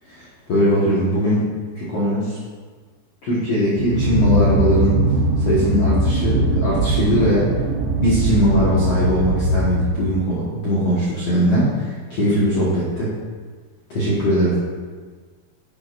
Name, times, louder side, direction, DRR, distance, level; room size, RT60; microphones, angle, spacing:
voice 1, 0.1-1.4 1.8-2.4 3.2-5.0 5.4-7.5 8.0-13.2 13.9-14.6, equal, 55° left, -8 dB, 2.0 m, -20 dB
drone sound brig, 3.7-10.2, right 1 dB, 80° right, 2.9 m, -20 dB
10.5 x 9.8 x 2.6 m, 1.5 s
omnidirectional pair, 4.5 m